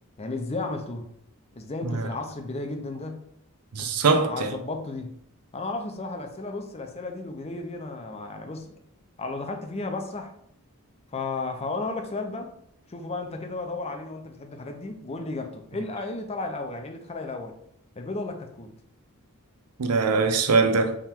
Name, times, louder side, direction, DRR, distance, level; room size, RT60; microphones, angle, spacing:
voice 1, 0.2-1.1 1.5-3.2 3.8-5.1 5.5-8.7 9.2-10.4 11.1-12.5 12.9-17.5 18.0-18.7, left 3 dB, 30° left, 0.5 m, -33 dB
voice 2, 3.7-4.5 19.8-21.0, right 4 dB, 90° right, 0.6 m, -22 dB
3.7 x 3.0 x 4.3 m
head